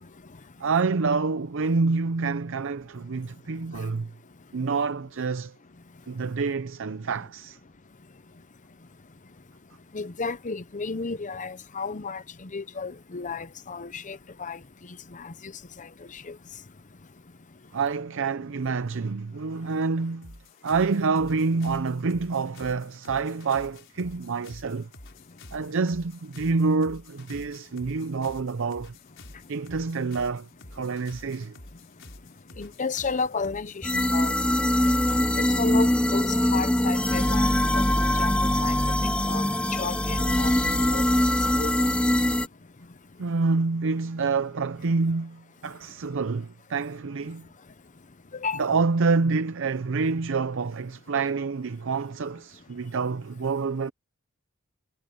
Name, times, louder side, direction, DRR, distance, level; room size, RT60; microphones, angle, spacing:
voice 1, 0.6-4.1 4.5-5.5 6.1-7.6 17.7-20.3 20.6-24.9 25.5-28.9 29.5-31.6 43.2-47.5 48.6-53.9, right 4 dB, 60° right, 0.6 m, -27 dB
voice 2, 9.9-14.6 15.1-15.3 15.8-15.9 16.1-16.3 32.6-34.3 35.4-37.5 37.7-37.8 38.2-38.7 39.3-39.4 39.7-40.5 40.9-41.0 41.6-41.7 48.4-48.6, left 4 dB, 35° left, 0.8 m, -32 dB
sound 1, 20.2-35.3, left 2 dB, 60° left, 5.7 m, -49 dB
sound 2, 33.8-42.5, left 1 dB, 5° left, 0.6 m, -23 dB
head